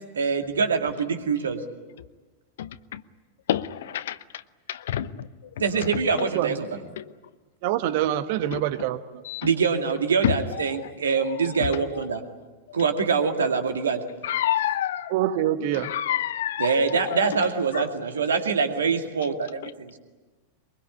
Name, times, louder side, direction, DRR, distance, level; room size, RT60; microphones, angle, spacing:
voice 1, 0.1-1.6 5.6-6.9 9.4-12.2 12.7-14.0 16.6-20.0, right 5 dB, 70° right, 2.2 m, -24 dB
voice 2, 2.6-3.0 3.5-4.2 4.7-5.3 7.0-7.1 8.5-8.6 9.2-9.5 10.2-10.3 14.2-15.1 15.7-16.7 17.1-17.3 17.7-17.8, left 11 dB, 60° left, 0.8 m, -27 dB
voice 3, 7.6-9.0 15.1-15.9, right 12 dB, 50° right, 1.3 m, -25 dB
23.5 x 23.0 x 9.9 m
figure-of-eight pair, 90°, 0 cm